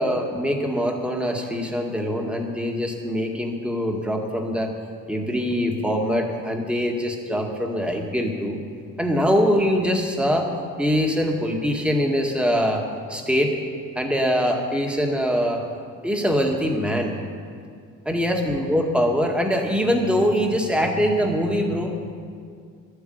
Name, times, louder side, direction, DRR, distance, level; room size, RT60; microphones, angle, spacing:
voice 1, 0.0-4.7 5.1-8.6 9.0-10.5 10.8-13.6 14.0-15.7 16.0-17.2 18.1-22.1, equal, 5° right, 1 dB, 1.8 m, -23 dB
12.0 x 8.2 x 9.3 m, 2.2 s
cardioid pair, 90°, 30 cm